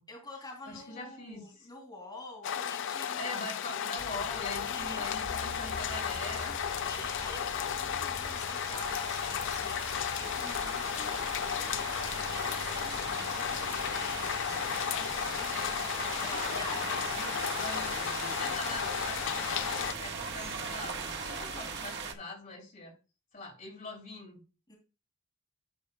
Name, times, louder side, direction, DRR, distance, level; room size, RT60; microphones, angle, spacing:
voice 1, 0.1-3.4 4.5-5.1 6.8-14.8 16.2-16.9 24.7-24.8, left 2 dB, 20° left, 3.0 m, -47 dB
voice 2, 0.7-1.7 3.2-6.6 7.0-7.1 14.8-16.5 16.8-22.9 23.3-24.4, left 2 dB, 35° left, 3.0 m, -43 dB
sound 1, 2.4-19.9, left 9 dB, 55° left, 0.4 m, -34 dB
sound 2, 4.0-21.8, left 1 dB, 80° left, 2.7 m, -48 dB
sound 3, 4.1-22.1, right 5 dB, 50° right, 1.4 m, -41 dB
11.5 x 6.3 x 2.3 m
head